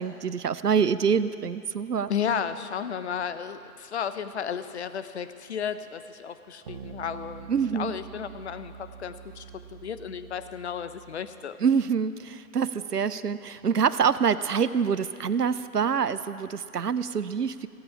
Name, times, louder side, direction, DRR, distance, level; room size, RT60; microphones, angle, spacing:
voice 1, 0.0-2.1 7.5-8.0 11.6-17.7, right 6 dB, 85° right, 15 dB, 0.7 m, -26 dB
voice 2, 2.1-9.4 9.7-11.6, left 7 dB, 45° left, 12 dB, 0.8 m, -33 dB
sound 1, 6.7-11.4, right 8 dB, 30° right, 0.7 m, -45 dB
17.5 x 15.5 x 4.9 m, 2.5 s
figure-of-eight pair, 130°, 47 cm